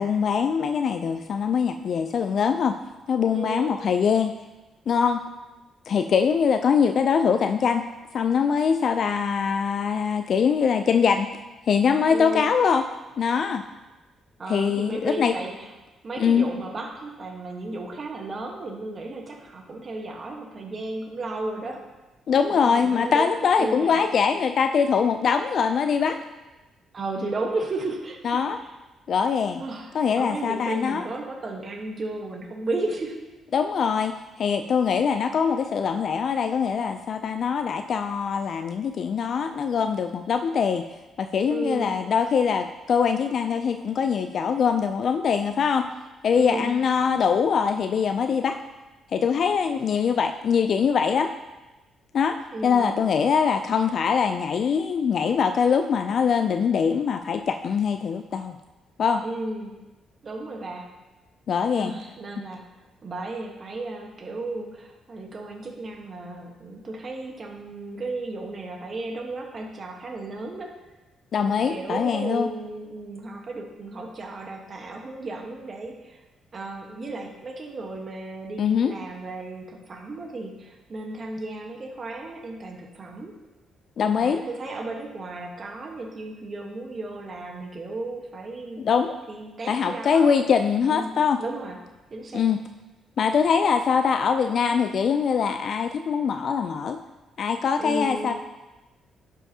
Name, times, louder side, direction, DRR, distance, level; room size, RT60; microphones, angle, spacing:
voice 1, 0.0-2.8 3.1-4.3 4.9-5.2 5.9-7.9 8.1-11.3 11.7-12.9 13.2-13.6 14.5-15.4 16.2-16.5 22.3-26.2 28.2-28.6 29.1-29.6 29.9-31.1 33.5-40.8 41.2-45.8 46.2-48.6 49.1-51.3 52.1-52.4 52.6-58.5 59.0-59.2 61.5-61.9 71.3-72.5 78.6-78.9 84.0-84.4 88.8-89.1 89.7-91.4 92.3-92.6 93.2-97.0 97.4-98.3, left 6 dB, 55° left, 7 dB, 0.3 m, -23 dB
voice 2, 3.3-3.7 12.1-12.5 14.4-15.7 16.0-21.8 22.5-24.0 26.9-28.4 29.6-33.2 41.5-42.0 46.3-46.7 52.5-52.9 59.2-59.7 60.2-60.9 61.7-62.6 63.0-70.7 71.4-76.2 76.5-83.3 84.2-88.9 89.3-90.3 90.9-91.1 91.4-91.8 92.1-92.5 97.8-98.3, right 2 dB, 40° right, 2 dB, 1.2 m, -34 dB
12.0 x 5.5 x 2.8 m, 1.1 s
cardioid pair, 90°, 0 cm